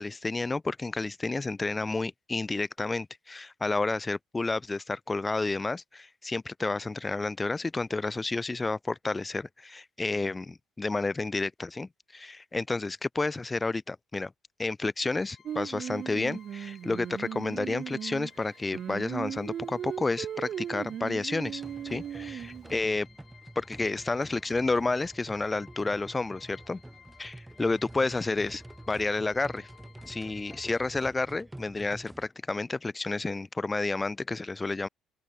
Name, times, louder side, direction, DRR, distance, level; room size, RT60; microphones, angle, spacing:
voice 1, 0.0-14.3 14.6-23.1 23.6-26.8 27.2-29.7 30.1-34.9, left 3 dB, 20° left, 0.8 m, -31 dB
sound 1, 15.1-31.0, left 7 dB, 45° left, 3.4 m, -57 dB
Singing, 15.5-22.7, right 9 dB, 55° right, 1.2 m, -37 dB
sound 2, 21.4-32.3, right 1 dB, 10° right, 2.0 m, -48 dB
open air
cardioid pair, 90°, 0 cm